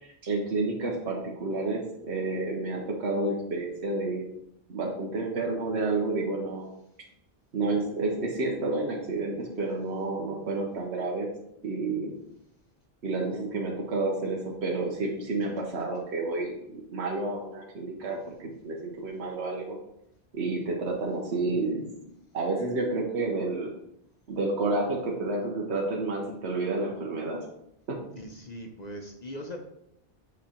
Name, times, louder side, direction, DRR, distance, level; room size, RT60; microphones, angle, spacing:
voice 1, 0.0-4.3 4.7-6.7 7.5-11.3 11.6-12.1 13.0-19.8 20.3-21.8 22.3-23.7 24.3-27.4 27.9-28.0, right 3 dB, 85° right, -1 dB, 1.2 m, -30 dB
voice 2, 28.2-29.6, equal, 45° left, 2 dB, 0.8 m, -40 dB
8.2 x 3.2 x 4.3 m, 0.77 s
omnidirectional pair, 1.1 m